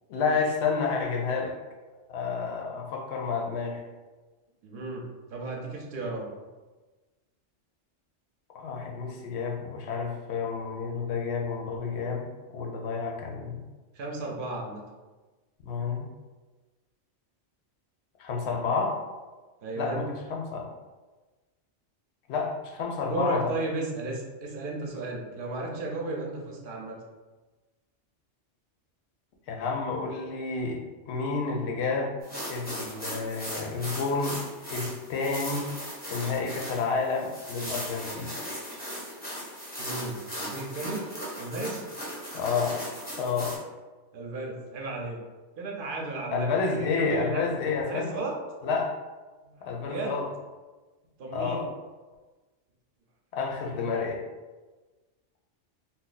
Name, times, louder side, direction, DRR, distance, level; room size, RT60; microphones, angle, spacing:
voice 1, 0.1-1.5 2.1-3.8 8.5-12.3 12.5-13.6 15.6-16.1 18.2-19.0 19.8-20.7 22.3-23.5 29.5-32.2 32.5-34.4 34.7-35.7 36.1-38.3 42.3-42.7 43.2-43.6 46.3-48.1 48.6-49.0 49.6-50.3 51.3-51.7 53.3-54.2, left 4 dB, 70° left, 1 dB, 0.8 m, -30 dB
voice 2, 4.6-6.3 13.9-14.8 19.6-20.1 23.0-27.0 39.8-41.1 41.4-41.8 44.1-45.2 45.6-47.5 47.9-48.3 49.4-50.2 51.2-51.6, right 2 dB, 55° right, 0 dB, 0.7 m, -34 dB
sound 1, 32.2-43.6, equal, 10° left, 0.6 m, -38 dB
2.7 x 2.0 x 3.9 m, 1.3 s
omnidirectional pair, 1.2 m